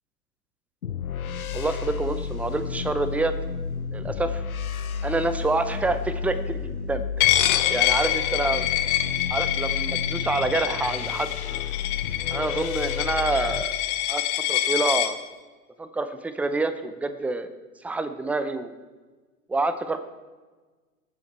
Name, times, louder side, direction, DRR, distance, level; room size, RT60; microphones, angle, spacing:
sound 1, 0.8-13.6, left 6 dB, 80° left, 0.8 m, -31 dB
voice 1, 1.5-3.3 3.9-4.4 5.0-7.3 7.7-8.7 9.3-11.3 12.3-13.7 14.1-14.2 14.5-15.2 15.8-17.5 17.8-18.7 19.5-20.0, right 3 dB, 5° right, 11 dB, 0.6 m, -27 dB
Coin (dropping), 7.2-15.1, left 13 dB, 40° left, 1.0 m, -26 dB
21.0 x 7.5 x 4.5 m, 1.3 s
figure-of-eight pair, 95°, 42 cm